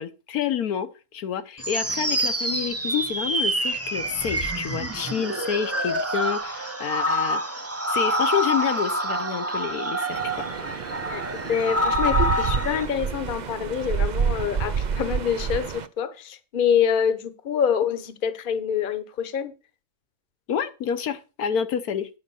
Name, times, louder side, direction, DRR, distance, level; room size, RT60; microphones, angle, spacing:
voice 1, 0.0-7.4 7.9-10.2 20.5-22.1, left 8 dB, 75° left, 1.3 m, -28 dB
sound 1, 1.6-12.9, right 1 dB, 15° right, 0.6 m, -27 dB
sound 2, 10.1-15.9, right 6 dB, 60° right, 0.4 m, -28 dB
voice 2, 11.5-19.5, left 8 dB, 40° left, 1.0 m, -26 dB
10.0 x 5.1 x 6.9 m
omnidirectional pair, 1.6 m